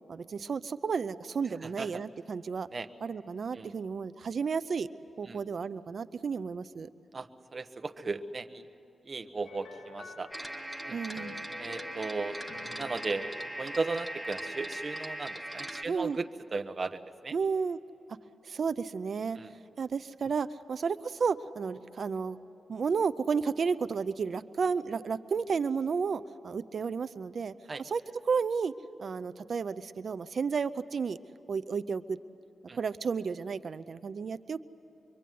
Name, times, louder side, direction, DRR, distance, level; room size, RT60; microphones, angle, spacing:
voice 1, 0.1-2.7 3.0-4.9 5.2-6.9 10.9-11.3 15.8-16.2 17.3-17.8 18.4-19.4 19.8-22.4 22.7-28.7 29.0-31.2 31.5-32.2 32.8-34.6, right 5 dB, 65° right, 13 dB, 0.6 m, -32 dB
voice 2, 7.1-8.7 9.0-10.3 10.9-11.0 11.6-12.4 12.8-13.3 13.6-16.2 16.5-17.3 19.4-19.5 27.7-27.8 32.7-32.8, right 3 dB, 40° right, 9 dB, 1.3 m, -36 dB
sound 1, 9.4-14.6, left 3 dB, 75° left, 3.5 m, -49 dB
sound 2, 10.3-15.8, right 1 dB, 5° right, 1.9 m, -40 dB
25.5 x 24.0 x 9.4 m, 2.8 s
cardioid pair, 85°, 0 cm